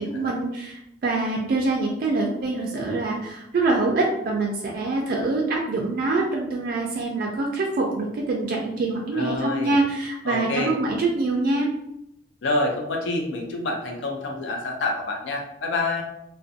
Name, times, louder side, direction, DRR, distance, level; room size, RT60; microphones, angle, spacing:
voice 1, 0.0-11.7, right 3 dB, 55° right, 0 dB, 0.3 m, -25 dB
voice 2, 9.1-9.8 10.3-10.7 12.4-16.0, left 2 dB, 85° left, 2 dB, 0.4 m, -27 dB
2.4 x 2.1 x 2.5 m, 0.85 s
head